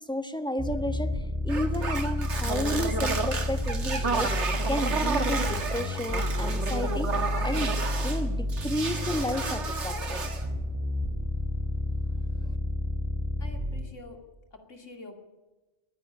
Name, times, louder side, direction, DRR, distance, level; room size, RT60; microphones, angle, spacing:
voice 1, 0.1-4.3 4.7-7.8 8.0-10.2 12.1-12.5, left 1 dB, 5° left, 8 dB, 1.4 m, -32 dB
sound 1, 0.6-13.8, left 1 dB, 20° right, 3.1 m, -30 dB
sound 2, 1.5-8.2 8.5-10.5, right 4 dB, 70° right, 2.0 m, -31 dB
voice 2, 13.4-14.2 14.5-15.2, left 2 dB, 85° left, 4 dB, 2.9 m, -46 dB
22.0 x 15.5 x 9.7 m, 1.2 s
omnidirectional pair, 1.3 m